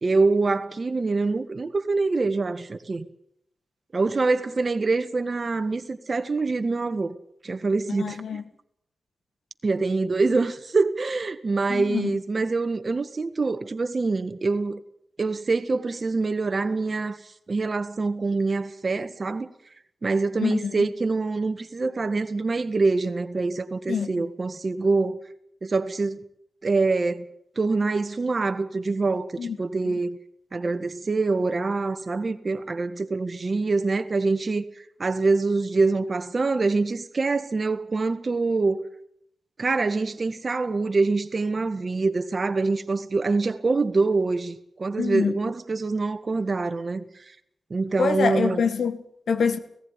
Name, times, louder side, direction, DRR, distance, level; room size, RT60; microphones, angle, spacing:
voice 1, 0.0-3.0 3.9-7.1 7.4-8.4 9.6-14.8 15.2-17.2 17.5-19.5 20.0-25.2 25.6-26.2 26.6-27.3 27.6-30.2 30.5-34.6 35.0-38.8 39.6-47.0 47.7-48.6, right 3 dB, 50° right, 1.5 m, -25 dB
voice 2, 8.0-8.4 11.7-12.2 20.4-20.9 23.9-24.1 29.4-29.6 29.9-30.0 45.0-45.4 48.0-49.6, left 6 dB, 85° left, 1.6 m, -26 dB
18.0 x 15.0 x 9.8 m
cardioid pair, 55°, 0 cm